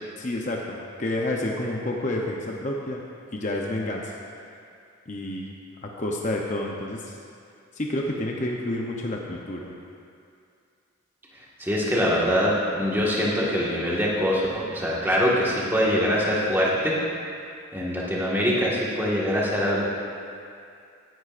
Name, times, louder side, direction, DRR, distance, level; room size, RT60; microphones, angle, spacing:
voice 1, 0.2-3.0 3.3-4.2 5.1-5.5 5.8-7.2 7.7-9.7, left 1 dB, 35° left, -1 dB, 0.7 m, -29 dB
voice 2, 11.6-17.0 17.7-19.8, equal, 10° right, -6 dB, 1.6 m, -23 dB
14.5 x 11.0 x 2.5 m, 2.4 s
head